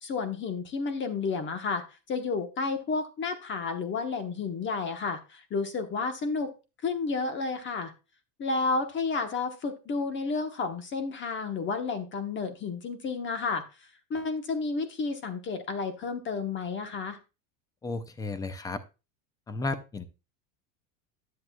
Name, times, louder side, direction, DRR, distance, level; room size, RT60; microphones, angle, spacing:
voice 1, 0.0-6.5 6.8-7.9 8.4-13.6 14.1-17.2, left 4 dB, 30° left, 8 dB, 1.0 m, -31 dB
voice 2, 17.8-18.8 19.5-20.1, left 3 dB, 10° left, 13 dB, 0.4 m, -33 dB
10.5 x 7.6 x 2.2 m, 0.29 s
supercardioid pair, 140°, 39 cm